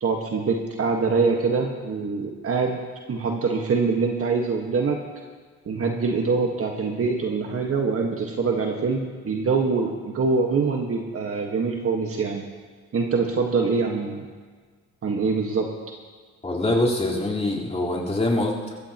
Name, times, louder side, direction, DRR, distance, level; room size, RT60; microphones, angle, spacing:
voice 1, 0.0-2.8 3.1-5.0 5.6-12.4 12.9-14.2 15.0-15.7, right 4 dB, 50° right, 1 dB, 1.6 m, -24 dB
voice 2, 16.4-18.8, left 1 dB, 20° left, -5 dB, 4.1 m, -24 dB
23.5 x 14.0 x 3.0 m, 1.5 s
cardioid pair, 90°, 30 cm